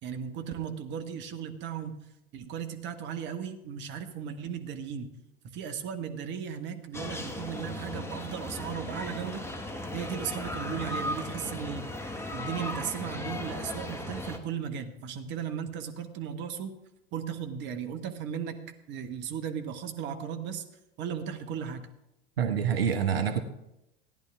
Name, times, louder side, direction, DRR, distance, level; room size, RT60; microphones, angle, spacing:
voice 1, 0.0-2.0 2.3-5.1 5.4-9.5 9.9-11.9 12.3-16.8 17.1-18.6 18.9-20.6 21.0-21.9, right 8 dB, 35° right, 7 dB, 1.2 m, -36 dB
sound 1, 6.9-14.4, left 1 dB, 10° left, 1.3 m, -36 dB
voice 2, 22.4-23.4, right 7 dB, 75° right, 8 dB, 1.1 m, -26 dB
15.5 x 10.5 x 3.5 m, 0.86 s
figure-of-eight pair, 85°, 30 cm